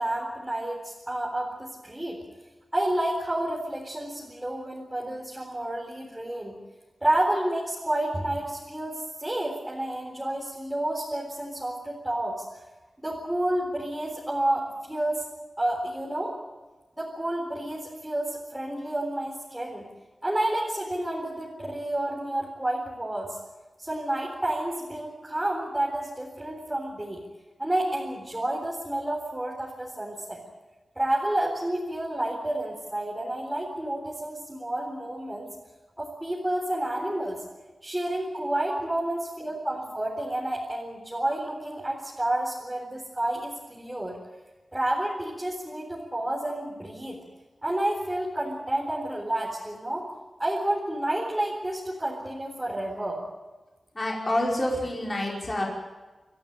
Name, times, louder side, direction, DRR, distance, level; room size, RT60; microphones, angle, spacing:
voice 1, 0.0-2.2 2.7-6.6 7.0-12.5 13.0-15.2 15.6-16.3 17.0-19.9 20.2-23.4 23.8-27.2 27.6-30.4 31.0-35.5 36.0-37.4 37.8-44.2 44.7-47.2 47.6-50.1 50.4-53.2, right 1 dB, 10° right, -3 dB, 4.0 m, -30 dB
voice 2, 53.9-55.6, left 1 dB, 25° left, -3 dB, 5.2 m, -27 dB
26.0 x 14.5 x 9.0 m, 1.2 s
wide cardioid pair, 125°, 0 cm